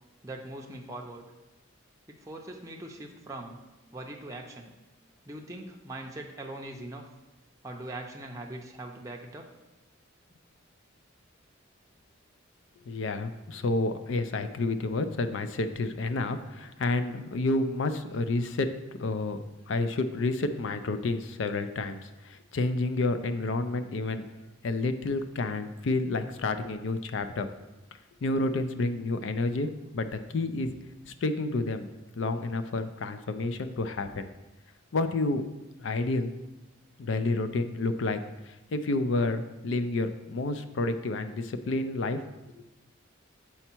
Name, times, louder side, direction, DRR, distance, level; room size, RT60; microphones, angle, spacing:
voice 1, 0.2-1.3 2.1-3.6 3.9-4.7 5.3-7.0 7.6-9.4, right 1 dB, 15° right, 0 dB, 0.5 m, -41 dB
voice 2, 12.9-18.7 19.0-24.2 24.6-27.5 28.2-30.7 31.1-34.3 34.9-35.5 35.8-36.3 37.0-38.2 38.5-42.2 42.6-42.7, left 2 dB, 65° left, 10 dB, 0.4 m, -30 dB
7.0 x 4.4 x 4.4 m, 1.0 s
head